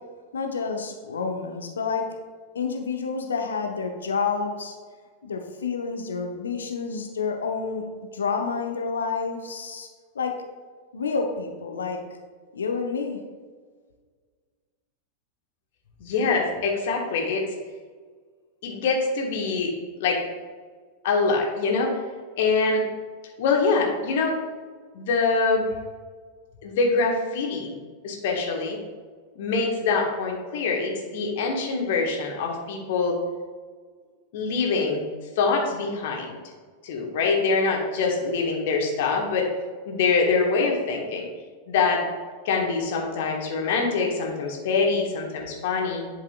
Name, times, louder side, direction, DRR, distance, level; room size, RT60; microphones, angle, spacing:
voice 1, 0.3-2.1 2.5-4.8 5.2-7.9 8.1-9.9 10.1-10.3 10.9-12.0 12.5-13.2, left 5 dB, 70° left, 4 dB, 0.8 m, -29 dB
voice 2, 16.0-17.4 18.6-19.7 20.0-20.2 21.0-21.9 22.4-22.8 23.4-24.4 24.9-25.7 26.6-27.7 28.0-28.8 29.3-33.2 34.3-35.0 35.4-36.4 36.8-39.5 39.9-41.2 41.7-42.0 42.4-46.0, left 4 dB, 55° left, 0 dB, 1.4 m, -24 dB
11.0 x 4.8 x 2.4 m, 1.5 s
figure-of-eight pair, 90°, 0 cm